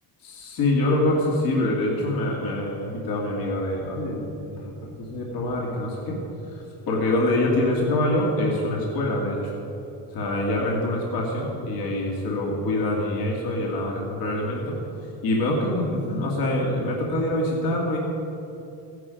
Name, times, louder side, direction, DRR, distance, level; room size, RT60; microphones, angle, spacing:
voice 1, 0.2-4.7 5.0-6.2 6.5-9.5 10.1-14.8 15.2-18.0, left 1 dB, 55° left, -2 dB, 2.2 m, -25 dB
15.0 x 10.5 x 5.2 m, 2.8 s
cardioid pair, 160°, 41 cm